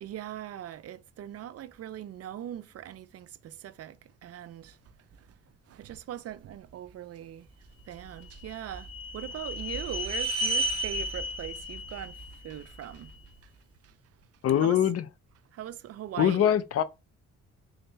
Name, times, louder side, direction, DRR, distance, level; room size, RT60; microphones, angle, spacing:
voice 1, 0.0-4.8 5.2-5.3 5.7-7.5 7.9-13.1 13.8-13.9 14.6-14.7 15.5-16.6, right 11 dB, 55° right, 0.4 m, -41 dB
sound 1, 8.0-13.2, equal, 15° right, 1.3 m, -33 dB
voice 2, 14.4-15.1 16.2-16.8, left 10 dB, 55° left, 0.5 m, -23 dB
3.9 x 2.7 x 3.3 m
cardioid pair, 90°, 30 cm